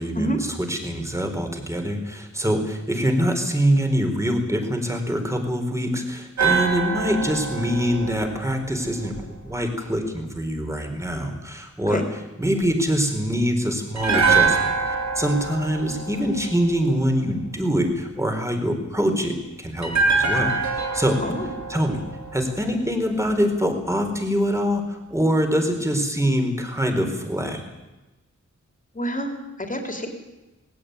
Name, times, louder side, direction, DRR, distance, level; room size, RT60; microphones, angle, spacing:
voice 1, 0.0-12.0 12.4-14.6 14.9-21.2 21.7-22.0 22.3-27.6, equal, 10° right, 5 dB, 4.2 m, -24 dB
sound 1, 6.4-9.5 13.9-17.2 19.8-23.0 23.3-23.4, right 4 dB, 65° right, 4.1 m, -25 dB
voice 2, 21.2-21.5 28.9-30.1, right 1 dB, 25° left, 5 dB, 3.6 m, -28 dB
19.5 x 17.0 x 9.5 m, 1.1 s
wide cardioid pair, 105°, 30 cm